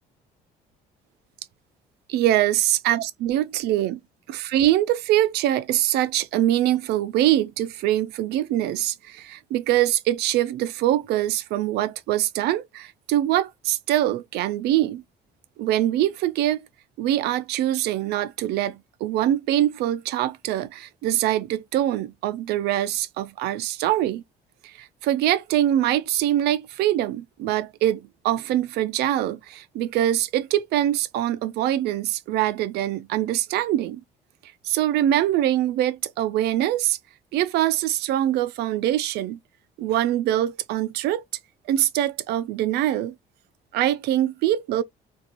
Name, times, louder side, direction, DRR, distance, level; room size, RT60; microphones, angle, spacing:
voice 1, 2.1-4.0 4.3-15.0 15.6-16.6 17.0-24.2 24.6-34.0 34.6-37.0 37.3-39.4 39.8-41.2 41.7-43.1 43.7-44.8, right 13 dB, 75° right, 0.4 m, -23 dB
2.5 x 2.3 x 2.8 m
cardioid pair, 110°, 17 cm